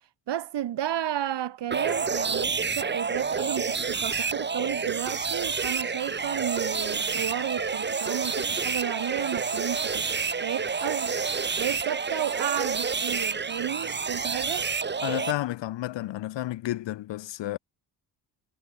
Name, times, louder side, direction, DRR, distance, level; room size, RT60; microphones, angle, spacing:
voice 1, 0.3-10.1 10.4-14.7, right 11 dB, 65° right, 6.6 m, -32 dB
sound 1, 1.7-15.3, right 5 dB, 25° right, 1.5 m, -29 dB
sound 2, 3.7-4.0 6.2-6.8 8.8-9.4, left 2 dB, 10° left, 7.3 m, -50 dB
voice 2, 15.0-17.6, left 15 dB, 70° left, 1.7 m, -31 dB
cardioid pair, 85°, 45 cm